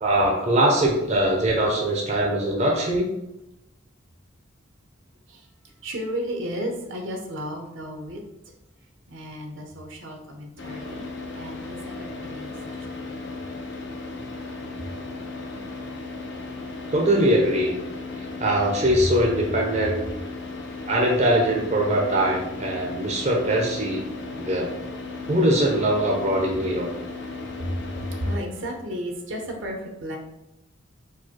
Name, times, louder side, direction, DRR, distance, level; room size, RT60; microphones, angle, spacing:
voice 1, 0.0-3.1 16.9-17.8 18.4-20.1 20.9-24.0 24.4-24.8 25.3-26.9, right 1 dB, 35° right, -1 dB, 0.6 m, -22 dB
voice 2, 5.8-8.2 9.1-11.1 11.3-13.2 27.6-30.2, equal, 70° right, 2 dB, 0.8 m, -33 dB
Car / Idling, 10.6-28.4, left 3 dB, 60° left, 0.6 m, -36 dB
4.6 x 2.2 x 4.5 m, 0.93 s
head